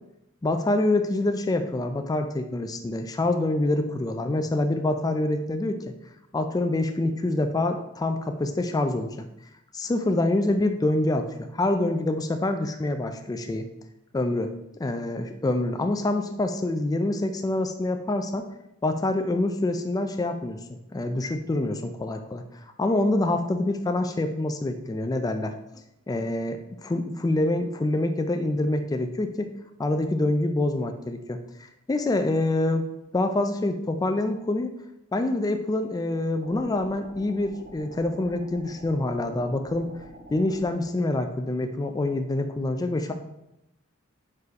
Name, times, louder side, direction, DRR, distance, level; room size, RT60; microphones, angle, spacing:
voice 1, 0.4-5.8 6.3-9.3 9.7-13.6 14.1-14.5 14.8-18.5 18.8-20.6 20.9-25.5 26.1-29.5 29.8-34.7 35.1-39.9 40.3-43.1, left 2 dB, 20° left, 6 dB, 0.3 m, -26 dB
sound 1, 36.4-40.9, equal, 50° right, 1.2 m, -47 dB
4.9 x 4.7 x 4.7 m, 0.85 s
head